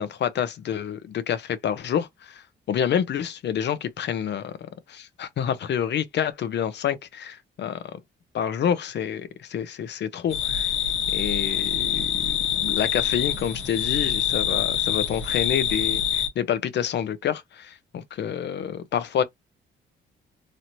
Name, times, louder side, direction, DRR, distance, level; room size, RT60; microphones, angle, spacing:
voice 1, 0.0-2.4 2.7-4.5 4.9-8.0 8.3-10.7 11.1-19.2, left 9 dB, 60° left, 0.7 m, -28 dB
sound 1, 10.3-16.3, left 9 dB, 80° left, 1.2 m, -25 dB
3.1 x 2.9 x 2.6 m
cardioid pair, 90°, 20 cm